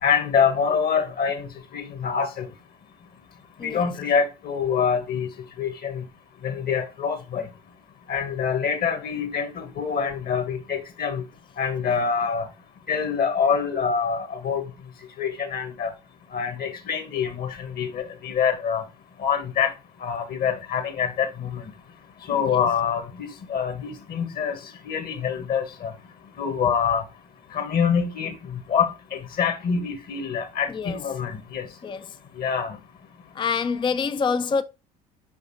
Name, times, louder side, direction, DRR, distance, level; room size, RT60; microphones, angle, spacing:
voice 1, 0.0-1.5 1.7-2.5 3.6-5.3 5.6-6.0 6.4-7.4 8.1-11.2 11.6-12.5 12.9-14.6 15.2-15.9 16.3-18.8 19.2-19.7 20.0-21.6 22.3-23.0 23.5-24.6 24.9-25.9 26.4-27.0 27.5-28.9 29.4-31.7 32.4-32.8, left 6 dB, 50° left, 1.9 m, -25 dB
voice 2, 22.3-22.6 30.7-31.0 31.8-32.2 33.3-34.6, left 5 dB, 25° left, 0.5 m, -26 dB
5.9 x 5.4 x 4.3 m
hypercardioid pair, 65°, 20 cm